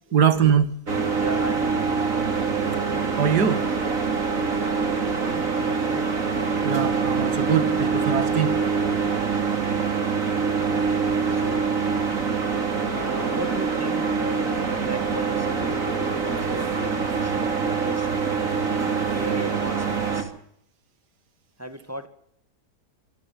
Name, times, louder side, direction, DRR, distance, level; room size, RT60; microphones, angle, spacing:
voice 1, 0.1-0.8 3.2-3.7 6.6-8.6, right 7 dB, 80° right, 2.3 m, -22 dB
sound 1, 0.9-20.2, right 5 dB, 55° right, 3.3 m, -25 dB
voice 2, 1.2-2.2 4.6-6.1 11.3-11.8 12.9-18.2 18.8-20.3 21.6-22.1, equal, 10° right, 2.0 m, -37 dB
26.0 x 15.5 x 7.6 m
omnidirectional pair, 1.7 m